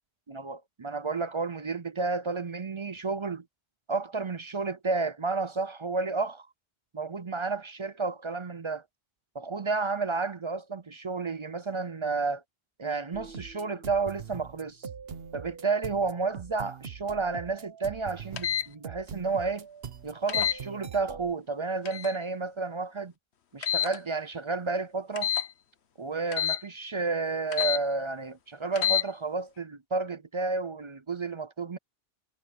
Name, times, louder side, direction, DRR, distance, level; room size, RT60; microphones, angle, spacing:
voice 1, 0.3-3.4 3.9-6.5 6.9-8.8 9.3-12.4 12.8-14.9 15.3-19.7 20.0-23.1 23.5-25.3 26.0-31.8, right 4 dB, 35° right, 0.5 m, -31 dB
sound 1, 13.1-21.3, right 7 dB, 65° right, 1.2 m, -42 dB
sound 2, 18.4-18.7 20.3-20.6 21.8-22.2 23.6-24.0 25.2-25.5 26.3-26.6 27.5-27.8 28.7-29.0, left 10 dB, 75° left, 1.3 m, -27 dB
omnidirectional pair, 1.1 m